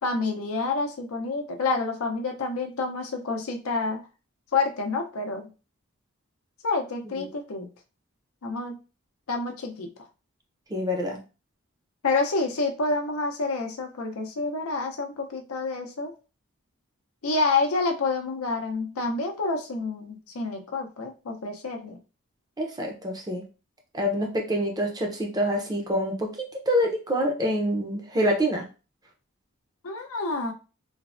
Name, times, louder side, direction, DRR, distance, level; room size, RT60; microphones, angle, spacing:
voice 1, 0.0-4.0 4.5-5.5 6.6-7.7 8.4-8.8 9.3-9.9 12.0-16.1 17.2-22.0 29.8-30.5, left 3 dB, 85° left, 4 dB, 0.6 m, -28 dB
voice 2, 10.7-11.2 22.6-23.4 23.9-26.3 26.7-28.6, equal, 20° right, 1 dB, 0.5 m, -26 dB
3.2 x 2.0 x 2.4 m, 0.32 s
head